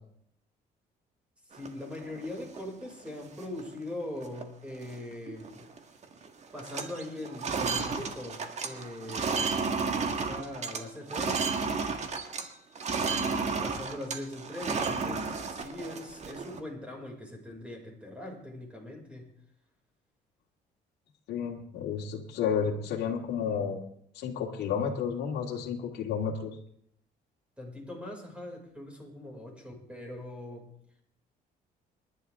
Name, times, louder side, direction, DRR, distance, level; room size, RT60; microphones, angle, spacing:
voice 1, 1.5-5.7 6.5-9.4 10.0-11.4 13.6-19.3 27.6-30.7, left 1 dB, 5° right, 0 dB, 5.8 m, -41 dB
sound 1, 1.5-2.6 3.1-3.2 3.4-3.8 4.2-4.4 4.7-5.8 6.0-6.3 6.5-12.5 12.7-16.6, right 4 dB, 40° right, 1.8 m, -32 dB
voice 2, 21.3-23.8 24.1-26.6, left 7 dB, 80° left, -2 dB, 2.1 m, -31 dB
28.5 x 11.0 x 3.7 m, 0.69 s
cardioid pair, 110°, 17 cm